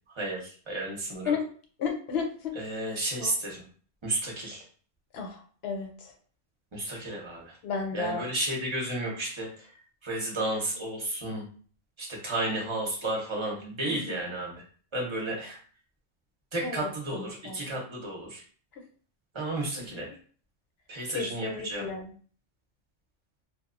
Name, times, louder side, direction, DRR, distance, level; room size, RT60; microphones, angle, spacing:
voice 1, 0.1-1.3 2.5-3.6 4.0-4.6 6.7-7.6 7.9-9.7 10.0-11.4 12.0-14.6 14.9-15.6 16.5-18.4 19.3-20.1 20.9-21.9, right 1 dB, 30° right, -2 dB, 0.7 m, -32 dB
voice 2, 1.8-2.5 3.2-3.3 5.1-6.1 7.6-8.2 13.9-14.2 16.6-17.6 19.8-19.9 21.1-22.1, left 5 dB, 65° left, 3 dB, 0.8 m, -33 dB
2.8 x 2.3 x 2.5 m, 0.43 s
omnidirectional pair, 1.2 m